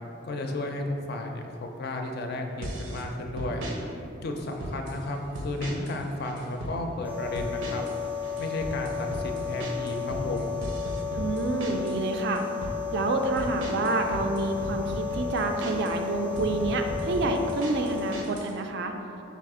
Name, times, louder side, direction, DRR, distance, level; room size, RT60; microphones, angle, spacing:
voice 1, 0.2-3.7 4.2-7.8 8.4-10.6, left 2 dB, 55° left, 3 dB, 0.4 m, -33 dB
sound 1, 2.6-3.0 3.4-3.8 4.4-5.0 5.3-6.0 6.2-6.8 7.4-12.0 12.4-12.8 13.4-16.0 16.4-18.5, right 1 dB, 85° right, 0.7 m, -36 dB
sound 2, 7.0-18.2, left 7 dB, 5° right, 0.5 m, -33 dB
voice 2, 11.1-12.4 12.9-18.9, right 3 dB, 60° right, 4 dB, 0.3 m, -28 dB
4.1 x 2.4 x 4.7 m, 2.8 s
head